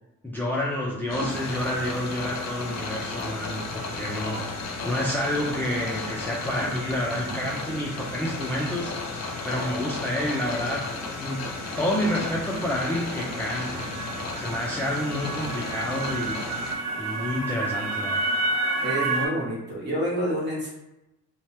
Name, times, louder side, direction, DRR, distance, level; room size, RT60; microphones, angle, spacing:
voice 1, 0.2-8.9 9.4-10.9 11.2-11.5 11.8-13.9 14.4-16.4 17.0-18.4, left 1 dB, 5° left, -4 dB, 0.5 m, -29 dB
sound 1, 1.1-16.8, left 3 dB, 60° left, 0.6 m, -34 dB
sound 2, 1.3-19.3, right 2 dB, 60° right, 0.5 m, -34 dB
voice 2, 18.8-20.7, equal, 35° right, -4 dB, 1.3 m, -28 dB
2.7 x 2.2 x 3.3 m, 0.92 s
cardioid pair, 90°, 30 cm